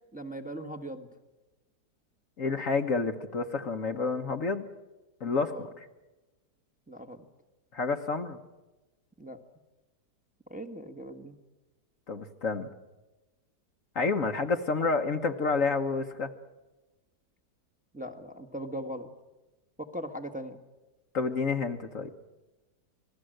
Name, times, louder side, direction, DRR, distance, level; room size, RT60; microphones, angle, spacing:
voice 1, 0.1-1.1 5.5-5.7 6.9-7.2 9.2-9.4 10.5-11.4 17.9-19.1 19.8-20.6, equal, 5° right, 4 dB, 1.3 m, -39 dB
voice 2, 2.4-4.7 5.2-5.9 7.7-8.4 12.1-12.7 13.9-16.3 21.1-22.1, left 4 dB, 55° left, 6 dB, 1.4 m, -29 dB
27.0 x 19.0 x 7.8 m, 1.1 s
omnidirectional pair, 1.8 m